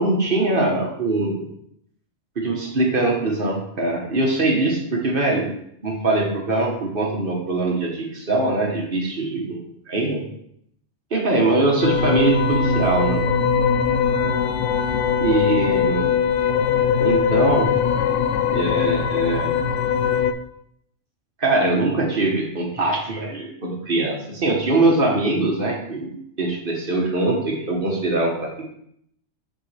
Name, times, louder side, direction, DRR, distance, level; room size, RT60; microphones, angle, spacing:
voice 1, 0.0-1.5 2.4-5.6 5.8-10.2 11.1-13.3 15.2-16.1 17.0-17.7 18.5-19.6 21.4-28.7, right 2 dB, 45° right, -1 dB, 1.3 m, -22 dB
sound 1, 11.8-20.3, left 6 dB, 70° left, 0.9 m, -21 dB
8.8 x 5.3 x 3.3 m, 0.72 s
omnidirectional pair, 1.3 m